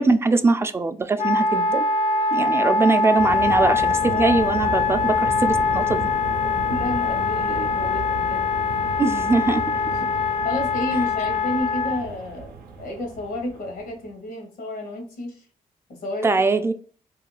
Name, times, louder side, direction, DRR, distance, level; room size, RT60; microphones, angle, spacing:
voice 1, 0.0-1.9 2.3-6.1 9.0-9.6 16.2-16.7, right 3 dB, 15° right, 10 dB, 0.3 m, -21 dB
Wind instrument woodwind instrument, 1.2-12.0, left 4 dB, 45° left, 0.4 m, -23 dB
sound 1, 3.2-14.0, right 4 dB, 80° right, 0.5 m, -34 dB
voice 2, 4.1-4.4 6.7-8.5 10.4-15.4 16.0-16.3, left 1 dB, 80° left, 3 dB, 0.9 m, -31 dB
2.4 x 2.3 x 3.0 m, 0.43 s
supercardioid pair, 50°, 15 cm